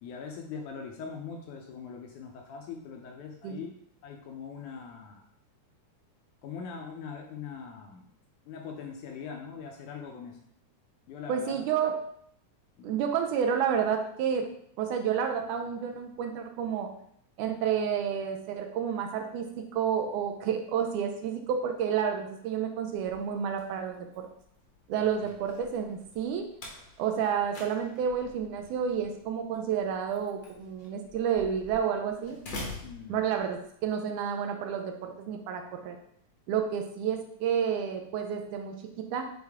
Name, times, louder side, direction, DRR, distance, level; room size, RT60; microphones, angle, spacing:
voice 1, 0.0-3.7 4.0-5.3 6.4-8.1 8.5-10.4 11.1-11.7 12.8-13.0 25.0-25.3 32.8-33.2, left 6 dB, 75° left, 2 dB, 1.9 m, -42 dB
voice 2, 11.3-12.0 12.8-14.5 14.8-16.9 17.4-24.3 24.9-26.5 27.0-32.4 33.1-36.0 36.5-39.3, right 7 dB, 80° right, 5 dB, 1.9 m, -30 dB
Slam, 22.9-33.8, left 2 dB, 55° left, 1.3 m, -47 dB
6.4 x 4.2 x 3.5 m, 0.68 s
omnidirectional pair, 3.9 m